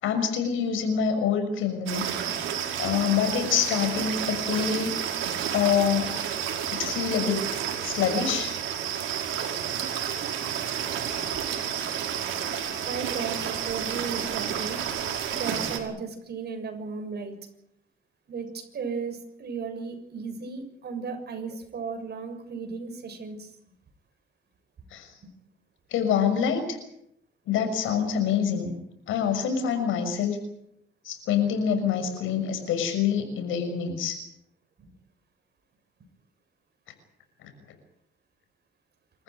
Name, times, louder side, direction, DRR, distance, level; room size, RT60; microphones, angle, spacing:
voice 1, 0.0-2.1 2.8-5.0 5.5-6.1 6.7-7.4 7.8-8.5 24.9-25.1 25.9-26.8 27.5-28.7 29.1-30.4 31.0-34.2 37.4-37.5, left 7 dB, 85° left, 7 dB, 6.4 m, -26 dB
sound 1, 1.9-15.8, right 9 dB, 85° right, 5.0 m, -30 dB
voice 2, 12.9-14.8 15.3-17.3 18.3-23.5 34.8-34.9, right 5 dB, 55° right, 6 dB, 7.1 m, -35 dB
26.5 x 15.0 x 9.6 m, 0.77 s
cardioid pair, 90°, 20 cm